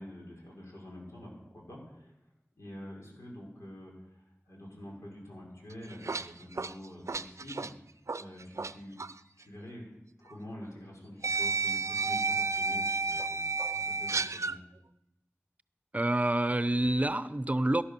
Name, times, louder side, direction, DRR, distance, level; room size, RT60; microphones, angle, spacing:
voice 1, 0.0-2.1 2.6-7.7 8.2-8.9 9.4-9.8 10.2-14.5, left 1 dB, 90° left, -2 dB, 6.1 m, -47 dB
sound 1, 5.7-8.7 9.0-9.2 10.3-10.4 11.2-14.6, right 4 dB, 85° right, 0.5 m, -32 dB
voice 2, 15.9-17.8, right 1 dB, 30° right, 14 dB, 0.7 m, -27 dB
18.0 x 11.5 x 6.9 m, 0.90 s
wide cardioid pair, 55°, 5 cm